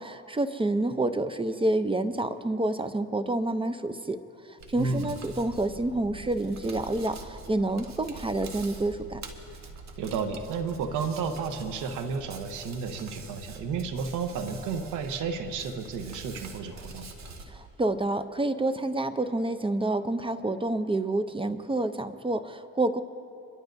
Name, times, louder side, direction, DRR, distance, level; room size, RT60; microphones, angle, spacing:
voice 1, 0.0-4.2 4.5-9.2 17.5-23.0, right 2 dB, 20° right, 10 dB, 0.6 m, -28 dB
Hands, 4.6-17.4, right 3 dB, 65° right, 1.5 m, -45 dB
voice 2, 4.7-5.1 10.0-17.1, right 5 dB, 90° right, 7 dB, 0.9 m, -32 dB
27.0 x 12.0 x 2.6 m, 2.9 s
cardioid pair, 90°, 30 cm